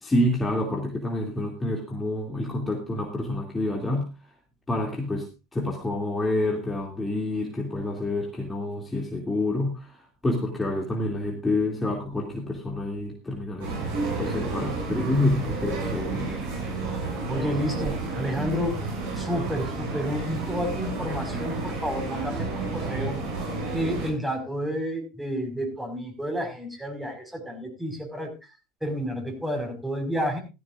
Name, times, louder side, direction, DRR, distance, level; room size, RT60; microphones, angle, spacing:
voice 1, 0.0-4.1 4.7-13.7 14.2-16.3, left 1 dB, 15° left, 0 dB, 2.8 m, -28 dB
sound 1, 13.6-24.1, right 3 dB, 65° right, 7.7 m, -31 dB
voice 2, 17.3-18.8 19.2-23.2 23.7-28.3 28.8-30.4, equal, 5° right, 3 dB, 5.3 m, -30 dB
16.5 x 14.0 x 2.6 m, 0.27 s
hypercardioid pair, 75°, 0 cm